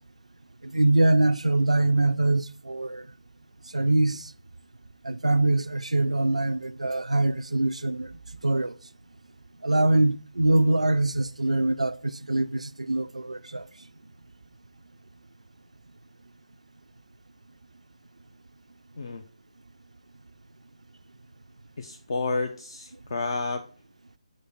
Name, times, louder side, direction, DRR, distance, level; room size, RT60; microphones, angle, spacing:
voice 1, 0.6-3.1 3.7-4.3 5.0-8.1 8.4-8.7 9.6-13.7, right 2 dB, 75° right, 0.4 m, -23 dB
voice 2, 21.8-23.6, left 3 dB, 45° left, 0.5 m, -30 dB
5.1 x 4.2 x 5.9 m
figure-of-eight pair, 145°, 4 cm